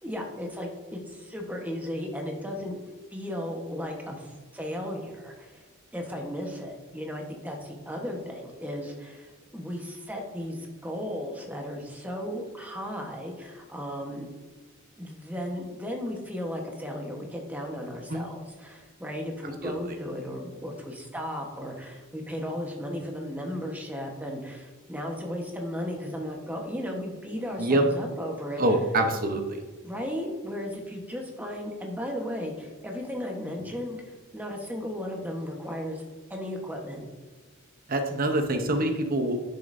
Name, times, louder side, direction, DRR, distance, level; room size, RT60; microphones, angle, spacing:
voice 1, 0.0-2.8 3.1-5.6 5.9-14.3 15.0-28.6 29.8-34.0 34.3-36.0 36.3-37.0, equal, 10° right, 1 dB, 1.1 m, -35 dB
voice 2, 19.6-19.9 27.6-27.8 28.6-29.6 37.9-39.4, right 1 dB, 45° right, 6 dB, 0.8 m, -25 dB
10.5 x 6.7 x 2.6 m, 1.3 s
head